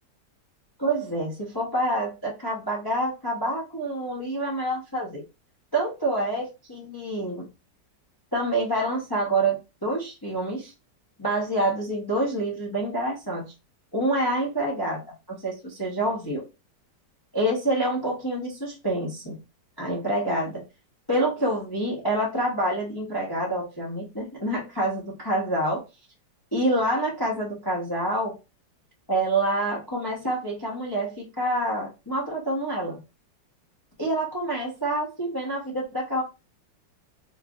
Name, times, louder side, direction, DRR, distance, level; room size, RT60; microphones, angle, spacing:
voice 1, 0.8-5.2 5.7-7.5 8.3-10.7 11.2-13.5 13.9-15.0 15.3-16.4 17.3-19.4 19.8-20.6 21.1-25.8 26.5-28.4 29.1-33.0 34.0-36.2, right 1 dB, 20° left, -3 dB, 0.7 m, -27 dB
3.3 x 3.2 x 2.4 m, 0.26 s
omnidirectional pair, 2.0 m